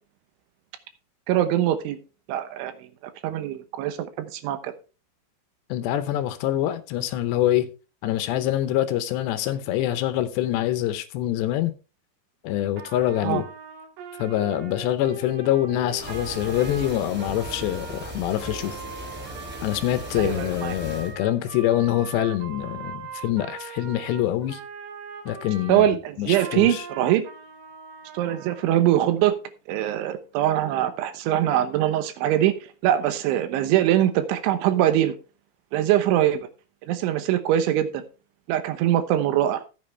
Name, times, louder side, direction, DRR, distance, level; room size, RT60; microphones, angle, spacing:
voice 1, 1.3-2.0 2.3-2.7 3.2-4.7 13.2-13.4 20.2-20.7 25.7-27.2 28.1-29.4 29.7-32.6 32.8-35.1 35.7-36.5 36.9-38.0 38.5-39.6, right 12 dB, 85° right, 3.4 m, -22 dB
voice 2, 5.7-7.7 8.0-11.7 12.4-13.5 14.2-18.8 19.6-24.6 25.3-25.9 26.2-26.9, left 12 dB, 75° left, 2.8 m, -25 dB
Trumpet, 12.8-25.9 26.3-28.8, right 6 dB, 70° right, 4.1 m, -41 dB
sound 1, 15.9-21.1, equal, 5° right, 2.2 m, -37 dB
14.5 x 8.5 x 3.3 m
omnidirectional pair, 5.4 m